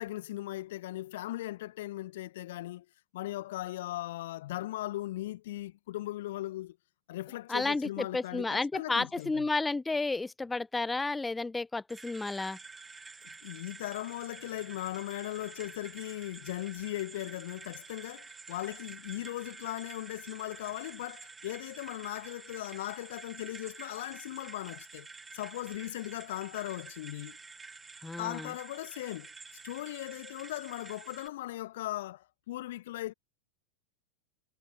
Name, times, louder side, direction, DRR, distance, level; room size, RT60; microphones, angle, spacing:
voice 1, 0.0-2.8 3.1-6.8 7.1-9.5 13.4-25.1 25.3-27.4 28.2-29.3 29.6-33.1, left 15 dB, 55° left, 0.9 m, -38 dB
voice 2, 7.5-12.6 28.0-28.5, left 3 dB, 10° left, 0.7 m, -32 dB
sound 1, 11.9-31.3, right 4 dB, 15° right, 1.0 m, -49 dB
figure-of-eight pair, 90°, 0 cm